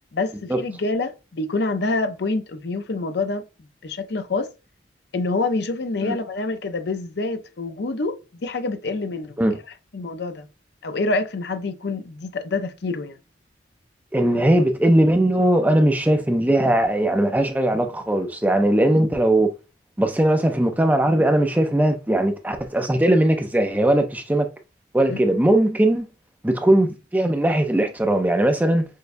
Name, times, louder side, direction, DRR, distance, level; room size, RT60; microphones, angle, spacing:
voice 1, 0.1-3.4 3.8-4.5 5.1-9.6 9.9-10.5 10.8-13.2 25.1-25.2, left 3 dB, 65° left, 0.6 m, -26 dB
voice 2, 14.1-19.5 20.0-24.5 24.9-26.1 26.4-28.9, right 1 dB, 10° right, 0.4 m, -19 dB
6.4 x 2.2 x 2.6 m
head